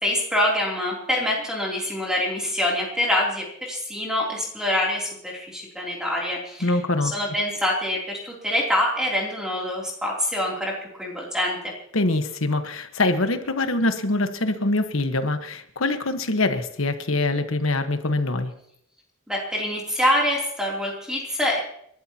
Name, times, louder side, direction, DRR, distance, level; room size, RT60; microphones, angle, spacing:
voice 1, 0.0-6.8 7.0-11.7 19.3-21.6, left 1 dB, 5° right, -3 dB, 3.1 m, -25 dB
voice 2, 6.6-7.2 11.9-18.5, left 2 dB, 80° left, 8 dB, 1.3 m, -24 dB
29.0 x 12.5 x 2.9 m, 0.71 s
head